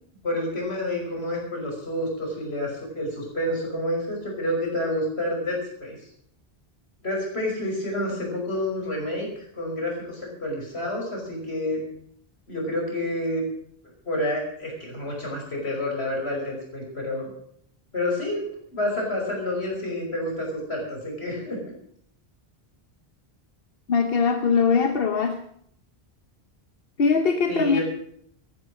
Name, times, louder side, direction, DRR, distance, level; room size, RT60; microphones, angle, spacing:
voice 1, 0.2-6.0 7.0-9.3 9.6-11.8 12.5-13.4 14.0-17.3 17.9-21.6 27.5-27.8, left 1 dB, 80° left, -1 dB, 5.7 m, -29 dB
voice 2, 23.9-25.4 27.0-27.8, left 5 dB, 65° left, 7 dB, 1.1 m, -21 dB
14.0 x 11.5 x 6.4 m, 0.68 s
omnidirectional pair, 1.1 m